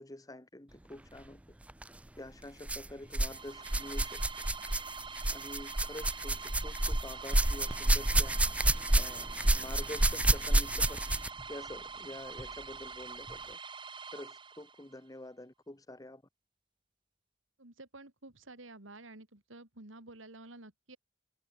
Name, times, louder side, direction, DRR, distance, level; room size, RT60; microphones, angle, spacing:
voice 1, 0.0-1.4 2.2-4.2 5.3-8.4 8.9-11.0 11.5-13.6 14.1-16.2, left 1 dB, 20° left, 1.2 m, -47 dB
sound 1, 1.7-1.9 2.6-3.4 3.6-11.4 12.4-12.5 13.3-13.4, right 1 dB, 5° right, 0.3 m, -29 dB
sound 2, 3.1-14.9, right 5 dB, 25° right, 2.5 m, -45 dB
voice 2, 17.6-21.0, right 2 dB, 80° right, 3.1 m, -51 dB
head